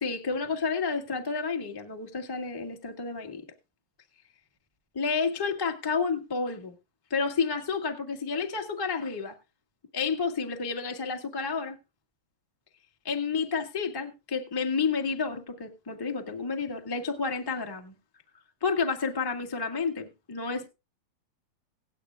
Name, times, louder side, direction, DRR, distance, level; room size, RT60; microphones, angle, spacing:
voice 1, 0.0-3.4 4.9-6.7 7.1-9.3 9.9-11.8 13.0-17.9 18.6-20.7, left 5 dB, 25° left, 3 dB, 0.4 m, -30 dB
17.5 x 12.0 x 2.3 m, 0.27 s
omnidirectional pair, 3.9 m